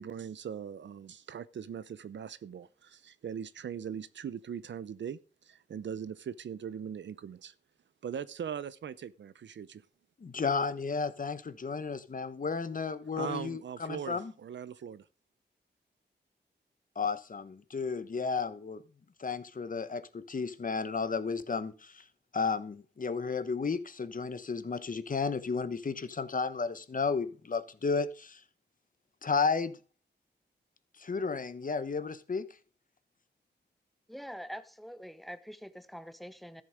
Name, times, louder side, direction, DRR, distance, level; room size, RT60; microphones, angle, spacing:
voice 1, 0.0-7.5 8.0-9.9 13.2-15.1, right 8 dB, 80° right, 0.7 m, -40 dB
voice 2, 10.2-14.3 17.0-18.8 19.2-22.0 22.3-28.4 29.2-29.8 31.0-32.4, left 5 dB, 45° left, 1.1 m, -33 dB
voice 3, 34.1-36.6, equal, ahead, 1.2 m, -44 dB
13.5 x 7.5 x 5.1 m
cardioid pair, 75°, 18 cm